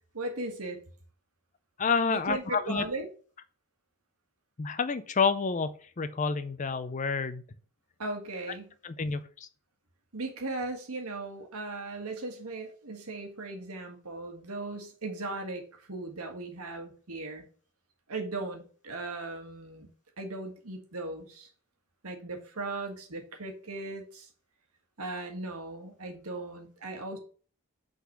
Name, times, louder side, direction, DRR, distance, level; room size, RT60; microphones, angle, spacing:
voice 1, 0.1-0.8 2.1-3.1 8.0-8.7 10.1-17.5 18.1-19.9 20.2-21.5 22.0-24.3 25.0-27.2, right 2 dB, 85° right, 5 dB, 1.6 m, -37 dB
voice 2, 1.8-2.8 4.6-7.4 8.8-9.5, left 5 dB, 35° left, 12 dB, 0.5 m, -29 dB
5.8 x 4.0 x 6.1 m, 0.41 s
head